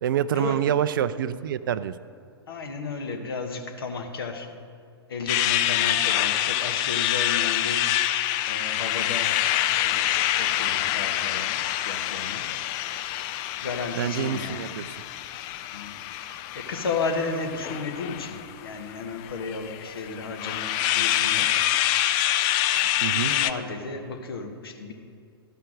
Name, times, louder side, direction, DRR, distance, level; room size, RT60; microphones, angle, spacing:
voice 1, 0.0-1.9 14.0-14.9 23.0-23.3, right 10 dB, 55° right, 14 dB, 0.4 m, -26 dB
voice 2, 2.5-4.5 5.1-7.9 8.5-9.4 9.8-12.5 13.6-14.6 15.7-21.6 22.8-24.9, left 4 dB, 65° left, 4 dB, 1.3 m, -34 dB
sound 1, 5.3-23.5, left 13 dB, 30° left, 0.4 m, -26 dB
13.5 x 5.8 x 6.4 m, 2.4 s
figure-of-eight pair, 110°, 13 cm